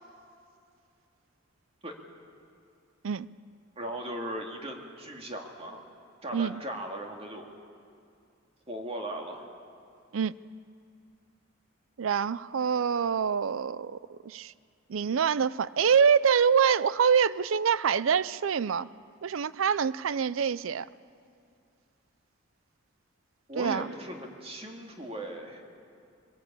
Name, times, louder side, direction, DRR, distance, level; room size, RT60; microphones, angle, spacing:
voice 1, 3.8-5.8 6.2-7.5 8.7-9.5 23.5-25.6, right 1 dB, 30° right, 2 dB, 2.2 m, -38 dB
voice 2, 12.0-14.5 14.9-18.9 19.2-20.9 23.6-23.9, right 7 dB, 85° right, 18 dB, 0.5 m, -25 dB
22.5 x 18.0 x 8.6 m, 2.4 s
head